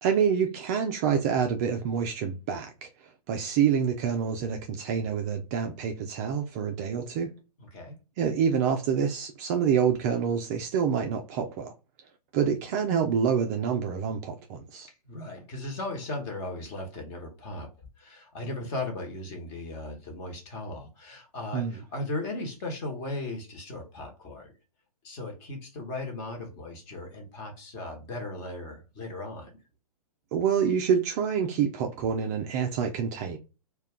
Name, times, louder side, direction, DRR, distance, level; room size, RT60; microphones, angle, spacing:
voice 1, 0.0-7.3 8.2-11.7 12.3-14.9 21.5-21.8 30.3-33.4, right 7 dB, 25° right, 0.3 m, -27 dB
voice 2, 7.6-8.0 15.1-17.7 18.0-24.5 25.0-29.5, left 2 dB, 30° left, 1.1 m, -37 dB
2.3 x 2.2 x 3.5 m
hypercardioid pair, 135°, 20 cm